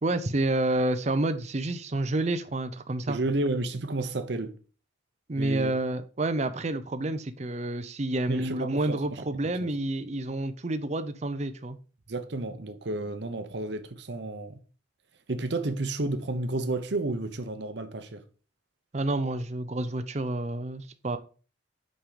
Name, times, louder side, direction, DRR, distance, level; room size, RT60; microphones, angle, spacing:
voice 1, 0.0-3.2 5.3-11.8 18.9-21.2, right 2 dB, 35° right, 0.6 m, -29 dB
voice 2, 3.1-4.6 5.3-5.7 8.3-9.7 12.1-14.6 15.3-18.2, right 2 dB, 65° right, 0.9 m, -31 dB
5.8 x 5.5 x 5.1 m
head